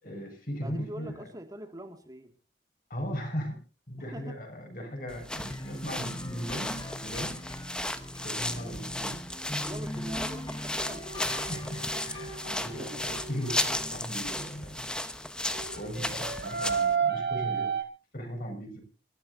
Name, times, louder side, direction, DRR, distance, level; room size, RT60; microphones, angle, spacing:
voice 1, 0.0-1.1 2.9-7.9 8.2-9.3 9.8-10.1 11.3-14.9 15.7-17.7 18.1-18.8, equal, 50° left, 3 dB, 6.1 m, -38 dB
voice 2, 0.6-2.3 4.0-4.4 9.6-11.5 12.7-13.0, right 1 dB, 20° right, 5 dB, 2.1 m, -44 dB
sound 1, 5.1-17.0, left 1 dB, 5° left, 1.0 m, -35 dB
sound 2, 5.5-15.3, left 1 dB, 20° left, 1.4 m, -42 dB
sound 3, 10.8-13.8 15.5-17.8, right 6 dB, 70° right, 2.5 m, -33 dB
27.5 x 13.5 x 2.7 m, 0.34 s
head